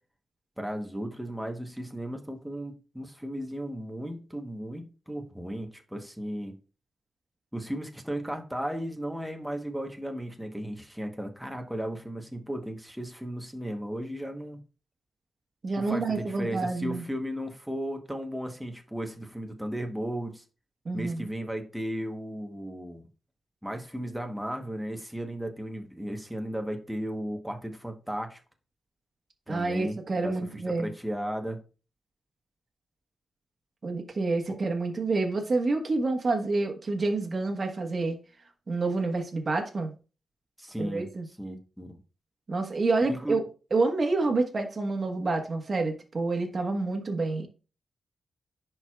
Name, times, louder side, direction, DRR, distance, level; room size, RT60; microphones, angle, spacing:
voice 1, 0.6-6.6 7.5-14.6 15.8-20.4 20.9-23.1 23.6-28.4 29.5-30.3 30.8-31.6 40.6-41.1 41.4-41.9 43.1-43.4, equal, 5° right, 1.0 m, -35 dB
voice 2, 15.6-17.0 20.8-21.3 29.5-30.9 33.8-38.2 38.7-39.9 40.8-41.3 42.5-43.4 43.7-47.5, right 3 dB, 40° right, 1.2 m, -28 dB
10.5 x 4.5 x 2.3 m
cardioid pair, 95°, 0 cm